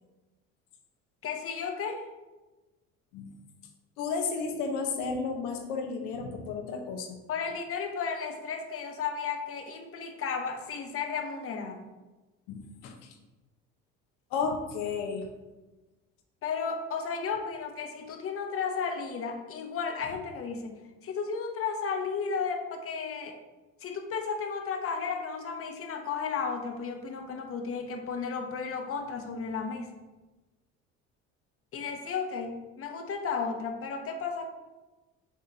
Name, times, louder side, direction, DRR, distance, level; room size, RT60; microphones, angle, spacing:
voice 1, 1.2-2.0 7.3-11.8 16.4-23.4 23.8-29.9 31.7-34.5, left 5 dB, 45° left, 4 dB, 1.1 m, -34 dB
voice 2, 4.0-7.2 12.5-12.9 14.3-15.3, left 5 dB, 75° left, 4 dB, 1.1 m, -32 dB
6.2 x 4.0 x 4.1 m, 1.1 s
supercardioid pair, 85°, 32 cm